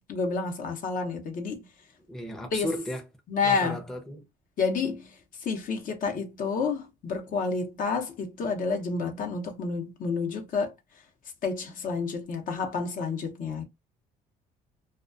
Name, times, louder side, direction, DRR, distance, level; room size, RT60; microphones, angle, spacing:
voice 1, 0.0-1.7 2.5-2.7 3.3-3.8 4.6-5.1 5.4-10.7 11.4-13.6, left 4 dB, 55° left, 0.7 m, -29 dB
voice 2, 2.1-3.0 3.4-4.3, equal, 5° left, 0.5 m, -34 dB
2.2 x 2.2 x 2.5 m
cardioid pair, 110°, 17 cm